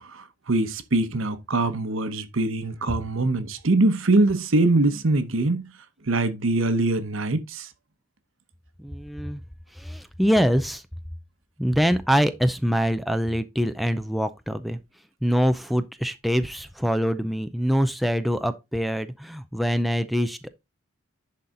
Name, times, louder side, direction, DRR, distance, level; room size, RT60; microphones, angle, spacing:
voice 1, 0.0-5.7 6.0-7.7, right 2 dB, 70° right, 1.0 m, -23 dB
voice 2, 8.8-9.4 9.7-10.8 11.6-14.8 15.2-20.5, equal, ahead, 0.4 m, -24 dB
10.5 x 4.2 x 3.8 m
head